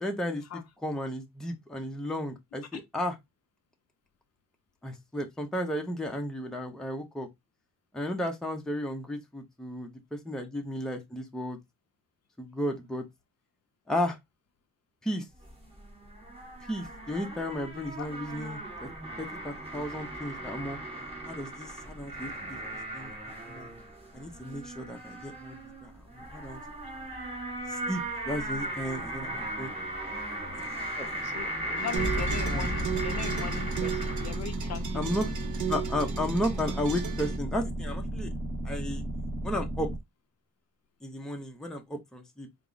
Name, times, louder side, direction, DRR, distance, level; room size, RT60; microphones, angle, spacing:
voice 1, 0.0-3.2 4.8-7.3 7.9-11.6 12.4-13.1 13.9-14.2 15.0-15.3 16.7-18.9 19.2-20.8 21.3-22.6 22.9-23.7 24.1-26.6 27.9-29.9 31.0-31.1 32.1-32.7 34.9-35.3 35.7-38.3 38.6-39.0 39.4-39.9 41.0-42.5, left 1 dB, ahead, 0.6 m, -34 dB
sound 1, 15.3-34.4, right 1 dB, 15° right, 1.5 m, -38 dB
voice 2, 31.2-35.4, left 8 dB, 50° left, 0.5 m, -39 dB
sound 2, 31.8-37.4, right 9 dB, 60° right, 0.8 m, -35 dB
sound 3, 32.0-40.0, right 1 dB, 35° right, 2.4 m, -34 dB
4.4 x 2.0 x 3.8 m
wide cardioid pair, 150°, 33 cm